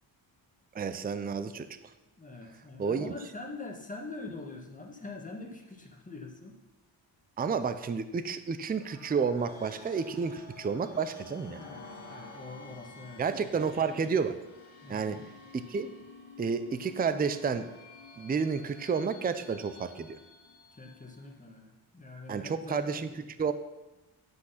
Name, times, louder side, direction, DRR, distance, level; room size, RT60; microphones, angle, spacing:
voice 1, 0.7-1.7 2.8-3.1 7.4-11.6 13.2-14.3 14.9-15.2 15.5-15.9 16.4-17.7 18.2-20.2 22.3-23.1 23.4-23.5, right 5 dB, 20° right, 11 dB, 0.5 m, -30 dB
voice 2, 2.2-6.6 11.5-13.3 14.8-15.2 20.7-22.9, left 3 dB, 15° left, 1 dB, 1.5 m, -44 dB
sound 1, 8.7-21.2, left 3 dB, 85° left, 1.8 m, -50 dB
10.5 x 6.1 x 5.7 m, 1.0 s
wide cardioid pair, 120°, 47 cm